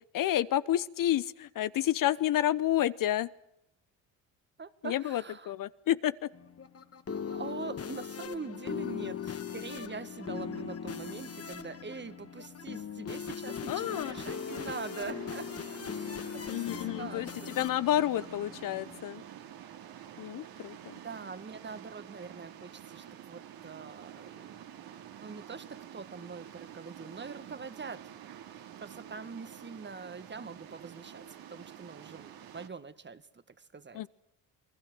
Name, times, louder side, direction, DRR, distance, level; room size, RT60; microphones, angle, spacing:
voice 1, 0.1-3.3 4.8-6.3 13.7-14.1 16.5-19.2 20.2-20.9 33.9-34.1, left 12 dB, 55° left, 16 dB, 1.0 m, -30 dB
voice 2, 4.6-5.5 7.3-17.5 21.0-24.8 25.2-28.1 28.5-34.1, right 5 dB, 25° right, 13 dB, 1.8 m, -44 dB
sound 1, 6.3-19.0, left 7 dB, 35° left, 2.0 m, -40 dB
sound 2, 13.8-32.7, right 10 dB, 65° right, 2.8 m, -49 dB
28.5 x 20.5 x 7.8 m, 0.79 s
supercardioid pair, 70°, 40 cm